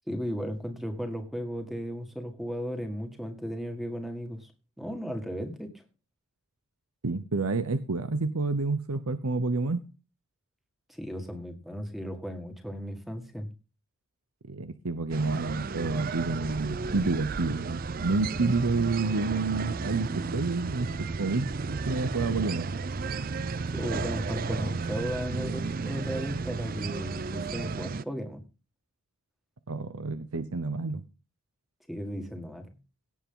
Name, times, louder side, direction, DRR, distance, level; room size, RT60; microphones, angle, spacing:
voice 1, 0.1-4.5 4.8-5.7 10.9-13.5 23.7-28.4 31.9-32.7, equal, ahead, 5 dB, 1.9 m, -35 dB
voice 2, 7.0-9.8 14.5-22.7 29.7-31.0, right 3 dB, 90° right, 12 dB, 0.9 m, -29 dB
belek kylä fs, 15.1-28.0, right 4 dB, 40° right, 0.5 m, -33 dB
17.5 x 7.3 x 3.8 m, 0.32 s
head